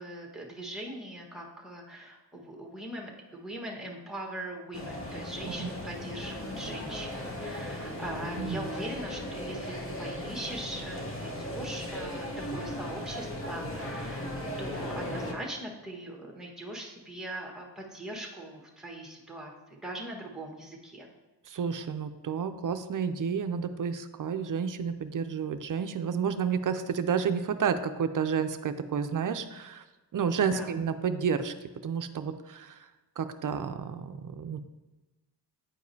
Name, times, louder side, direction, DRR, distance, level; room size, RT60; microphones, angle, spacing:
voice 1, 0.0-14.3 14.6-19.5 19.8-21.1 30.5-30.7, right 1 dB, ahead, -1 dB, 1.3 m, -41 dB
sound 1, 4.7-15.3, left 1 dB, 30° left, 1.0 m, -37 dB
voice 2, 21.5-29.8 30.1-31.5 31.8-32.9 33.2-34.6, right 6 dB, 50° right, 10 dB, 0.5 m, -30 dB
8.9 x 4.7 x 2.7 m, 1.1 s
cardioid pair, 70°, 42 cm